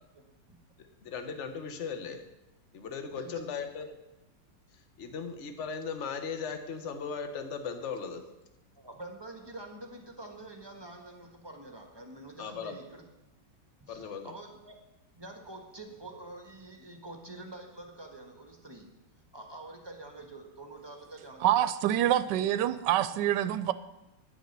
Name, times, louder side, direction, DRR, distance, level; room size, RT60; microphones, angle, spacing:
voice 1, 1.0-2.2 2.7-3.9 5.0-8.2 12.4-12.8 13.9-14.3, left 6 dB, 45° left, 1.2 m, -37 dB
voice 2, 3.1-3.5 8.8-13.3 13.8-14.7 15.1-18.9 19.3-21.5, right 2 dB, 15° right, 1.3 m, -46 dB
voice 3, 21.4-23.7, right 12 dB, 75° right, 1.2 m, -26 dB
10.5 x 7.6 x 6.7 m
omnidirectional pair, 2.0 m